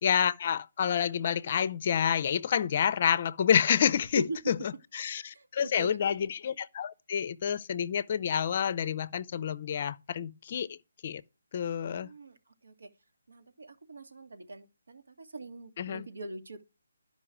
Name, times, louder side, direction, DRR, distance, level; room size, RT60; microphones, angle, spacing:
voice 1, 0.0-10.7 11.0-11.2 11.5-12.1 15.8-16.1, left 8 dB, 40° left, 0.5 m, -28 dB
voice 2, 5.3-6.2 12.0-12.4 12.6-12.9 13.3-16.6, right 1 dB, 80° right, 1.9 m, -41 dB
11.0 x 5.4 x 6.1 m
figure-of-eight pair, 160°, 0 cm